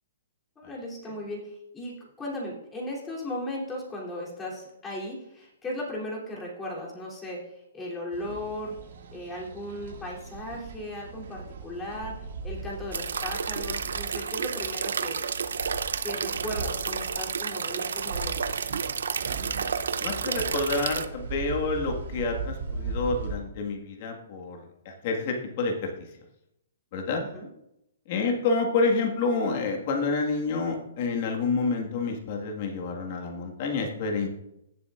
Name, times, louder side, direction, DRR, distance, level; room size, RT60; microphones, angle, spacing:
voice 1, 0.6-8.8 9.1-12.1 12.4-15.3 16.0-18.7 27.3-27.5, left 1 dB, 15° left, -4 dB, 3.1 m, -37 dB
sound 1, 8.1-23.4, right 4 dB, 70° right, 2.0 m, -39 dB
sound 2, 12.9-21.1, right 6 dB, 85° right, 0.7 m, -31 dB
voice 2, 20.0-25.7 26.9-27.2 28.1-34.3, left 3 dB, 45° left, 1 dB, 1.7 m, -28 dB
16.5 x 7.7 x 2.5 m, 0.83 s
hypercardioid pair, 150°, 0 cm